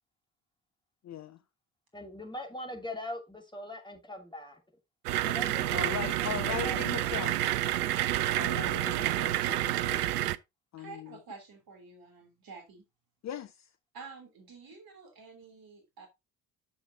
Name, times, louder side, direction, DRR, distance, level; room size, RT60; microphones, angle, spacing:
voice 1, 1.9-4.6 5.2-7.3, left 1 dB, 10° left, 2.7 m, -42 dB
sound 1, 5.1-10.4, right 14 dB, 75° right, 0.5 m, -29 dB
voice 2, 5.7-7.4 8.3-10.1 10.7-11.2 13.2-13.7, left 10 dB, 35° left, 0.6 m, -39 dB
voice 3, 10.8-12.8 13.9-16.1, right 4 dB, 50° right, 3.2 m, -49 dB
10.0 x 6.9 x 2.7 m
figure-of-eight pair, 45°, 47 cm